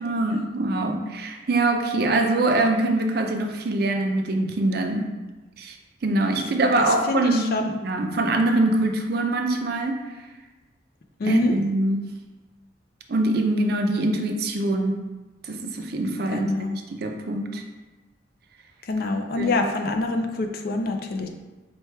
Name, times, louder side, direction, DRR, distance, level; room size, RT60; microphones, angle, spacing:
voice 1, 0.0-5.1 5.6-5.7 6.0-7.5 7.8-10.0 11.3-12.0 13.1-14.9 15.5-16.5 16.9-17.6 19.4-19.5, right 2 dB, 50° right, 3 dB, 0.4 m, -23 dB
voice 2, 6.8-7.7 11.2-11.6 16.3-16.8 18.8-21.3, left 2 dB, 50° left, 4 dB, 0.4 m, -25 dB
4.4 x 2.2 x 4.5 m, 1.2 s
head